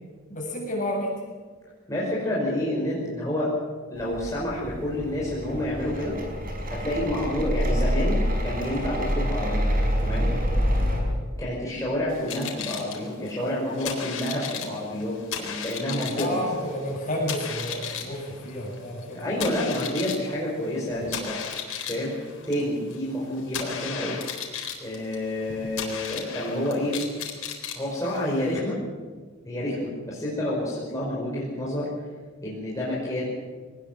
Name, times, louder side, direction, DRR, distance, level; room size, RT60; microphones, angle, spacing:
voice 1, 0.3-1.1 10.9-11.1 16.1-19.2, equal, 35° left, -1 dB, 7.3 m, -30 dB
voice 2, 1.9-3.5 3.9-6.2 6.7-9.6 10.0-10.3 11.4-16.4 19.1-21.4 21.9-22.1 22.4-24.2 24.8-27.0 27.8-28.8 29.5-31.9 32.4-33.2, left 1 dB, 15° left, -7 dB, 5.4 m, -29 dB
sound 1, 4.0-11.0, equal, 40° right, 4.8 m, -26 dB
sound 2, 12.1-28.5, left 7 dB, 85° left, 4.0 m, -36 dB
23.0 x 19.0 x 7.6 m, 1.4 s
head